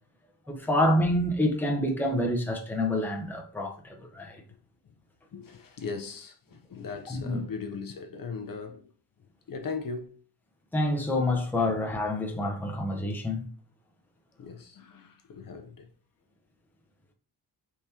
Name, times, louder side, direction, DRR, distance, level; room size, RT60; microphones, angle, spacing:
voice 1, 0.5-4.4 7.1-7.4 10.7-13.5, left 1 dB, 5° left, 0.8 m, -27 dB
voice 2, 5.3-8.9 9.5-10.2 11.7-11.8 14.4-15.9, left 5 dB, 55° left, 0.7 m, -39 dB
4.6 x 3.6 x 2.8 m
wide cardioid pair, 150°, 41 cm